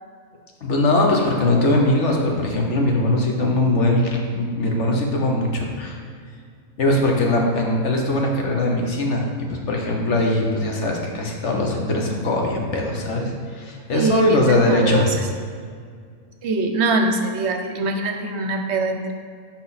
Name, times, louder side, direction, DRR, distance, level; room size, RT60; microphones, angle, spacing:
voice 1, 0.6-6.0 6.8-15.1, left 2 dB, 55° left, 0 dB, 1.4 m, -21 dB
voice 2, 13.9-15.3 16.4-19.1, right 3 dB, 55° right, 5 dB, 0.9 m, -23 dB
11.5 x 4.3 x 4.1 m, 2.1 s
omnidirectional pair, 1.5 m